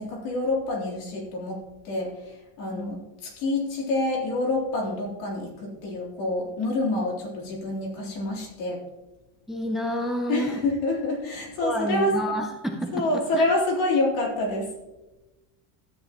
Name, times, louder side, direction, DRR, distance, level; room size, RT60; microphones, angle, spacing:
voice 1, 0.0-8.8 10.3-12.2 12.9-14.7, left 2 dB, 75° left, -2 dB, 3.7 m, -27 dB
voice 2, 9.5-10.6 11.6-13.4, equal, ahead, 3 dB, 0.5 m, -29 dB
13.0 x 9.3 x 3.0 m, 1.1 s
cardioid pair, 180°, 44 cm